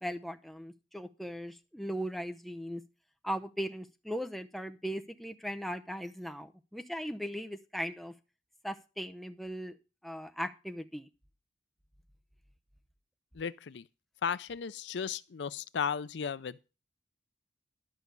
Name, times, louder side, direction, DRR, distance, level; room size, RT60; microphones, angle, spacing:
voice 1, 0.0-2.8 3.2-8.1 8.6-9.8 10.0-11.1, equal, ahead, 0.7 m, -38 dB
voice 2, 13.3-13.9 14.2-16.7, left 7 dB, 70° left, 0.5 m, -35 dB
11.5 x 6.0 x 6.7 m
head